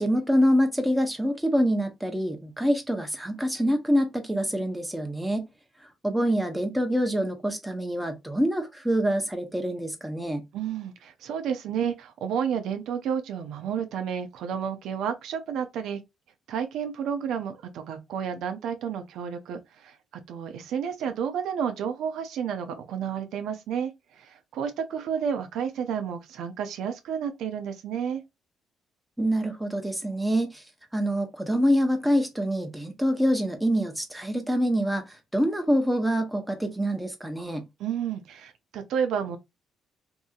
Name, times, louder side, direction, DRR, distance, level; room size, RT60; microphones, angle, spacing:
voice 1, 0.0-5.5 6.0-10.4 29.2-30.6 30.9-37.6, equal, 5° right, 0.8 m, -25 dB
voice 2, 10.5-16.0 16.5-20.0 20.3-28.2 37.8-39.4, right 7 dB, 75° right, 0.5 m, -31 dB
2.7 x 2.6 x 2.4 m
supercardioid pair, 70°, 0 cm